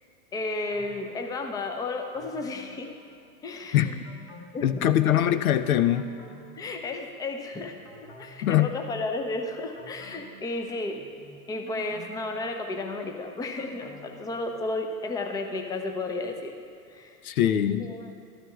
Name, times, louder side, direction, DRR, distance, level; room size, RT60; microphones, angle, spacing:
voice 1, 0.3-2.9 3.4-3.9 4.5-4.9 6.6-7.8 8.0-16.5 16.9-17.2 17.8-18.1, left 2 dB, 10° left, 4 dB, 0.5 m, -33 dB
sound 1, 0.7-1.5 2.1-3.6 4.0-5.4 5.7-7.4 7.9-9.2 9.8-11.2 11.7-14.9 15.2-15.3, left 3 dB, 35° left, 1.2 m, -50 dB
voice 2, 4.6-6.0 8.4-8.7 17.2-17.9, left 11 dB, 70° left, 11 dB, 0.6 m, -22 dB
13.0 x 12.5 x 2.3 m, 2.3 s
figure-of-eight pair, 90°, 45 cm